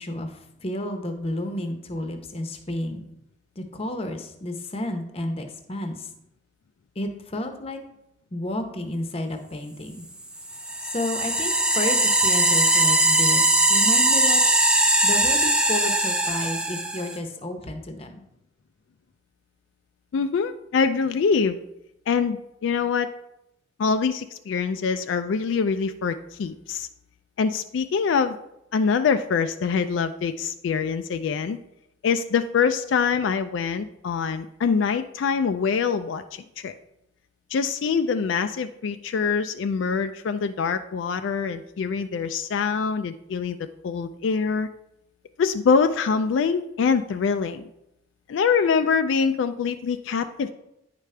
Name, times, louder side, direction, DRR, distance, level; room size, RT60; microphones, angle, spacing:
voice 1, 0.0-3.0 3.6-6.1 7.0-7.8 8.3-10.0 10.8-14.4 15.0-18.2, left 1 dB, 30° left, 6 dB, 0.8 m, -31 dB
sound 1, 10.4-17.2, right 1 dB, 5° right, 0.5 m, -20 dB
voice 2, 20.1-21.6 22.1-23.1 23.8-26.9 27.4-28.4 28.7-31.6 32.0-36.7 37.5-43.6 43.8-44.7 45.4-47.7 48.3-50.5, left 5 dB, 80° left, 9 dB, 0.3 m, -24 dB
9.2 x 4.9 x 3.3 m, 0.85 s
head